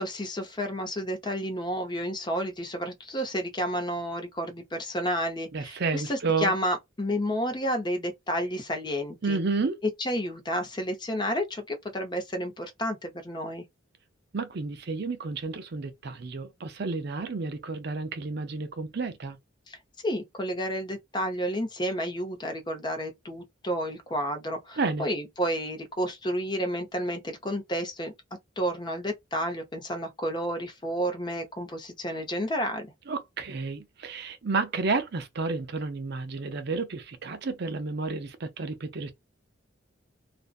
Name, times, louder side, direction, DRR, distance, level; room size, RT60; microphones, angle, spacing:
voice 1, 0.0-9.4 9.8-13.6 19.7-19.8 20.0-28.1 28.6-32.9, equal, 25° left, 0.6 m, -31 dB
voice 2, 5.5-6.5 9.2-9.8 14.3-19.4 24.8-25.1 33.1-39.1, right 4 dB, 55° right, 0.6 m, -31 dB
2.5 x 2.1 x 2.3 m
head